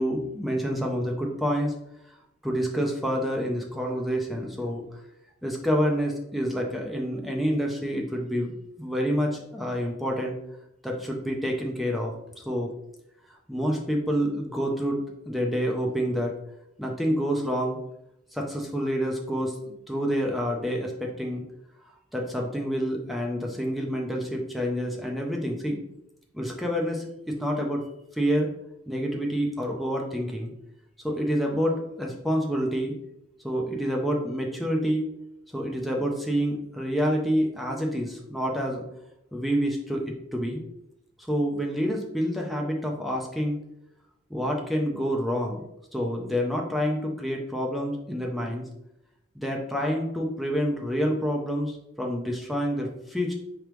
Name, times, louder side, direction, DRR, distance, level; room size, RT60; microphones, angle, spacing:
voice 1, 0.0-1.7 2.4-4.8 5.4-8.5 8.8-10.4 10.8-12.1 12.5-12.7 13.5-16.3 16.8-17.8 18.3-21.4 22.1-25.8 26.3-27.8 28.2-28.5 28.9-30.5 31.0-32.9 33.4-35.1 35.5-38.8 39.3-40.6 41.3-43.6 44.3-45.6 45.9-48.6 49.4-53.3, equal, ahead, 0 dB, 0.5 m, -28 dB
4.8 x 3.4 x 3.0 m, 0.81 s
head